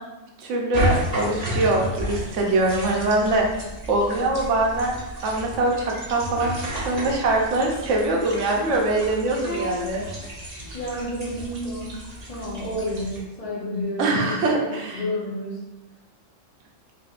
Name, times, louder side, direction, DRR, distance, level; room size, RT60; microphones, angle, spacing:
voice 1, 0.4-3.5 3.9-4.9 5.2-10.0 14.0-15.0, right 2 dB, 70° right, 0 dB, 1.1 m, -23 dB
sound 1, 0.7-13.2, right 1 dB, 40° right, 0.7 m, -32 dB
voice 2, 9.4-9.8 10.7-12.0 12.3-15.6, equal, 35° left, -5 dB, 0.7 m, -30 dB
5.0 x 2.7 x 2.4 m, 1.0 s
omnidirectional pair, 1.3 m